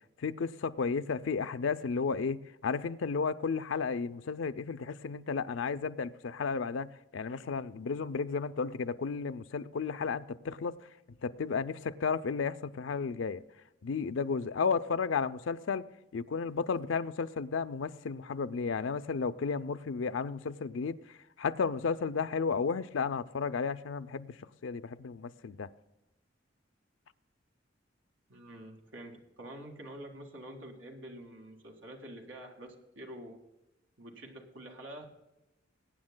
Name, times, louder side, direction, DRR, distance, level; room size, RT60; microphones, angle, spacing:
voice 1, 0.2-10.9 11.2-13.4 13.8-15.8 16.1-25.7, left 5 dB, 85° left, 11 dB, 0.5 m, -33 dB
voice 2, 28.3-33.4 34.0-35.1, right 1 dB, 85° right, 1 dB, 1.9 m, -47 dB
22.0 x 9.6 x 2.2 m, 0.95 s
head